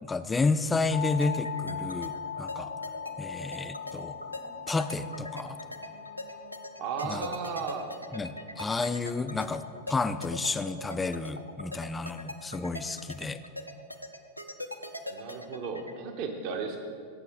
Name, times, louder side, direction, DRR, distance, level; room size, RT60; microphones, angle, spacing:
voice 1, 0.0-2.7 3.2-4.1 4.7-5.6 7.0-7.3 8.1-13.4, left 3 dB, 10° left, 11 dB, 0.4 m, -31 dB
sound 1, 0.9-10.7, left 8 dB, 45° left, 0.7 m, -41 dB
sound 2, 1.2-15.9, left 1 dB, 90° left, 0.5 m, -40 dB
sound 3, 1.5-7.4, equal, 85° right, 2.4 m, -55 dB
voice 2, 6.8-7.9 15.1-16.8, right 5 dB, 45° right, 5 dB, 1.0 m, -35 dB
15.5 x 5.8 x 3.6 m, 2.2 s
figure-of-eight pair, 90°, 0 cm